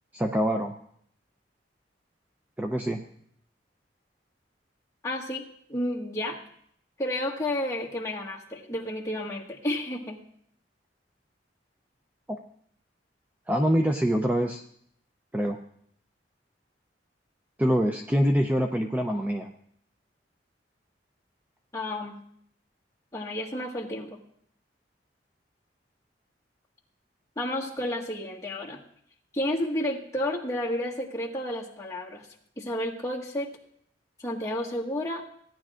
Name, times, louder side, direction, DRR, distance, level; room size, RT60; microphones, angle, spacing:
voice 1, 0.1-0.7 2.6-3.0 12.3-12.4 13.5-14.6 15.3-15.6 17.6-19.5, equal, 10° right, 3 dB, 0.5 m, -25 dB
voice 2, 5.0-6.4 7.0-10.2 21.7-22.2 23.1-24.2 27.4-28.8 29.3-32.2 32.6-33.5 34.2-35.2, left 1 dB, 20° left, -3 dB, 1.6 m, -31 dB
17.0 x 10.5 x 2.5 m, 0.66 s
head